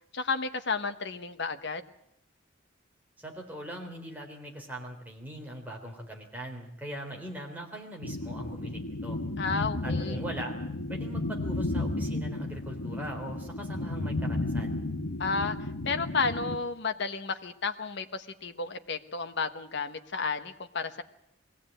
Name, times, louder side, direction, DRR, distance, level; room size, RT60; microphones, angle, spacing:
voice 1, 0.1-1.8 9.4-10.2 15.2-21.0, left 4 dB, 60° left, 9 dB, 1.2 m, -32 dB
voice 2, 3.2-9.2 9.8-10.5 10.9-14.7, right 1 dB, 10° right, 0 dB, 3.6 m, -41 dB
sound 1, 8.0-16.6, left 2 dB, 85° left, 1.3 m, -33 dB
21.5 x 16.5 x 9.0 m, 0.77 s
head